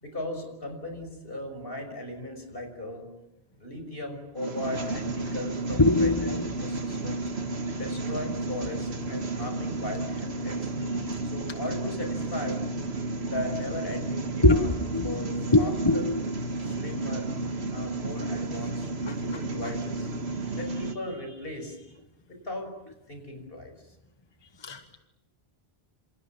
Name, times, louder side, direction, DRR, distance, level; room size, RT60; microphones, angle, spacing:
voice 1, 0.0-3.1 3.6-7.2 7.8-10.6 11.3-12.6 13.2-14.7 15.0-16.1 16.6-17.3 17.7-22.0 22.3-22.7 23.1-23.7, left 1 dB, 60° left, 5 dB, 6.2 m, -37 dB
sound 1, 4.4-20.9, right 2 dB, 75° right, 2.1 m, -32 dB
voice 2, 5.8-6.5 14.4-15.2 15.5-16.2 16.6-16.7 19.1-19.2 24.6-25.0, left 2 dB, 25° left, 7 dB, 1.3 m, -23 dB
28.0 x 27.5 x 7.4 m, 0.93 s
omnidirectional pair, 1.1 m